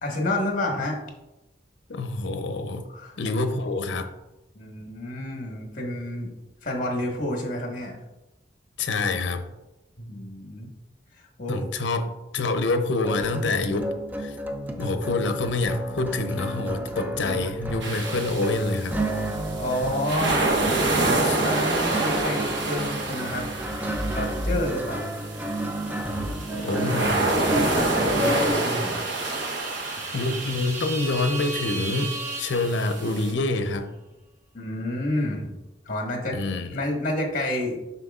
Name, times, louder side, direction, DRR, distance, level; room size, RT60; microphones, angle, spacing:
voice 1, 0.0-1.0 2.9-3.2 4.5-6.3 6.6-7.9 10.0-10.7 11.4-11.7 19.6-20.5 21.1-23.5 24.1-25.0 25.9-26.1 26.6-27.0 27.7-29.0 34.5-35.6 35.8-36.4 36.7-37.8, left 1 dB, 50° left, 1 dB, 1.4 m, -29 dB
voice 2, 1.9-2.8 3.2-4.1 8.8-9.4 11.5-13.9 14.2-14.4 14.7-19.0 21.2-21.4 26.5-27.3 28.5-28.6 30.1-33.9 36.3-36.8, left 2 dB, 90° left, 8 dB, 0.6 m, -27 dB
sound 1, 13.0-28.5, right 1 dB, 10° right, 0.5 m, -31 dB
sound 2, 17.8-33.3, right 2 dB, 90° right, 1.0 m, -28 dB
sound 3, 25.3-33.4, right 3 dB, 45° right, 1.4 m, -37 dB
7.7 x 5.8 x 2.4 m, 0.97 s
head